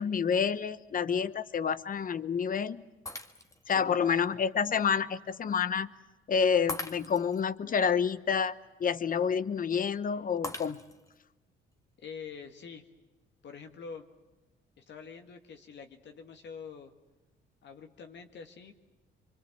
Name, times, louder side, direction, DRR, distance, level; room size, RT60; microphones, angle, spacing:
voice 1, 0.0-2.8 3.7-5.9 6.3-8.5 8.8-10.8, left 6 dB, 45° left, 16 dB, 1.0 m, -28 dB
Shatter, 3.1-3.8 4.3-4.4 6.7-7.4 10.4-11.2, left 2 dB, 15° left, 1.8 m, -40 dB
voice 2, 3.7-4.1 12.0-12.8 13.4-14.1 14.8-16.9 17.6-18.7, left 6 dB, 60° left, 5 dB, 2.0 m, -46 dB
25.5 x 24.5 x 7.9 m, 1.1 s
cardioid pair, 90°, 20 cm